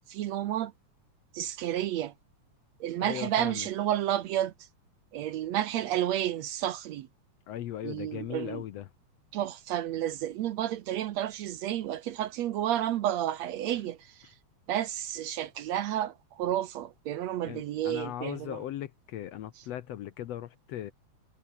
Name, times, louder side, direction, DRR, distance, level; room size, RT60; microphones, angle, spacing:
voice 1, 0.1-0.7 1.3-2.1 2.8-4.5 5.1-7.1 7.8-8.6 9.3-14.0 14.7-18.6, right 12 dB, 70° right, 1.9 m, -31 dB
voice 2, 3.0-3.7 7.5-8.9 13.7-13.8 17.5-20.9, left 12 dB, 65° left, 1.8 m, -38 dB
omnidirectional pair, 3.6 m